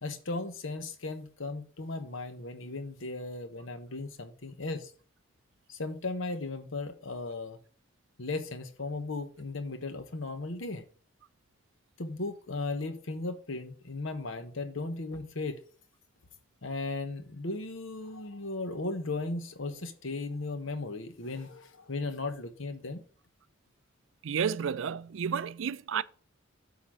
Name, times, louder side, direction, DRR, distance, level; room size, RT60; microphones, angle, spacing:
voice 1, 0.0-4.9 5.7-7.6 8.2-10.8 12.0-15.6 16.6-23.0, left 3 dB, 70° left, 1.1 m, -36 dB
voice 2, 24.2-26.0, right 7 dB, 70° right, 0.4 m, -31 dB
8.1 x 3.9 x 6.2 m
head